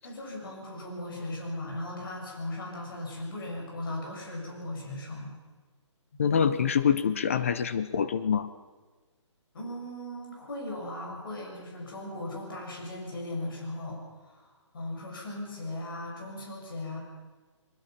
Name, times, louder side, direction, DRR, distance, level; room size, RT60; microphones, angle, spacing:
voice 1, 0.0-5.4 9.5-14.5 14.7-17.0, left 1 dB, 45° left, 0 dB, 6.4 m, -38 dB
voice 2, 6.2-8.5, left 7 dB, 25° left, 13 dB, 0.6 m, -25 dB
22.0 x 21.0 x 5.9 m, 1.3 s
hypercardioid pair, 170°, 16 cm